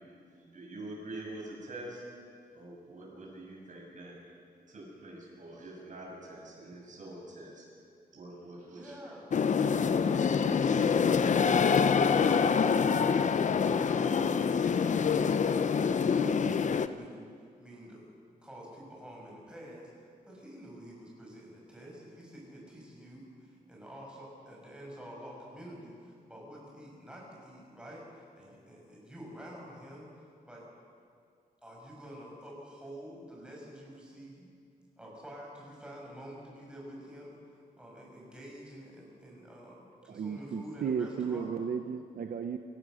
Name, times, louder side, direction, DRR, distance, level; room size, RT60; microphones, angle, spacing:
voice 1, 0.1-2.0 2.5-4.2 4.7-7.7 8.1-8.9, right 1 dB, 55° right, -3 dB, 7.2 m, -45 dB
voice 2, 8.7-11.6 12.1-14.1 14.7-17.2 17.6-18.0 18.4-30.1 30.5-30.7 31.6-34.5 35.0-41.5, equal, 5° right, -4 dB, 6.4 m, -48 dB
sound 1, 9.3-16.9, left 6 dB, 50° left, 0.7 m, -26 dB
voice 3, 40.1-42.6, right 6 dB, 70° right, 6 dB, 0.9 m, -34 dB
28.0 x 16.0 x 6.4 m, 2.3 s
wide cardioid pair, 150°, 16 cm